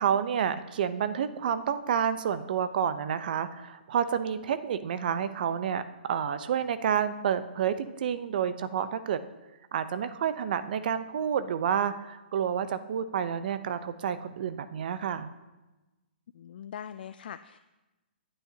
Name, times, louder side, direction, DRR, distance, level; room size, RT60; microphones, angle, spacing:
voice 1, 0.0-5.8 6.1-9.2 9.7-15.3, right 8 dB, 55° right, 11 dB, 0.8 m, -29 dB
voice 2, 16.3-17.6, left 9 dB, 60° left, 12 dB, 0.4 m, -42 dB
22.5 x 8.8 x 2.9 m, 1.1 s
hypercardioid pair, 140°, 6 cm